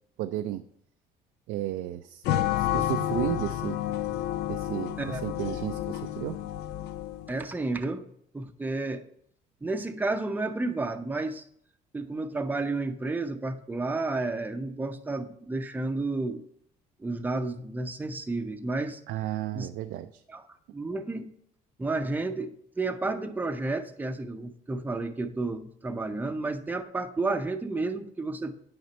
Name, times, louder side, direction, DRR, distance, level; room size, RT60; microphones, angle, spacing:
voice 1, 0.2-0.6 1.5-2.2 2.6-3.8 4.5-6.4 19.1-20.2, right 13 dB, 80° right, 8 dB, 0.4 m, -33 dB
sound 1, 2.2-7.4, left 12 dB, 85° left, 0.5 m, -30 dB
voice 2, 7.3-8.0 8.3-9.0 9.6-11.4 11.9-16.4 17.0-19.0 19.5-19.7 20.3-20.4 20.7-21.3 21.8-28.7, right 3 dB, 10° right, 7 dB, 0.6 m, -31 dB
9.6 x 5.1 x 4.3 m, 0.68 s
cardioid pair, 110°, 17 cm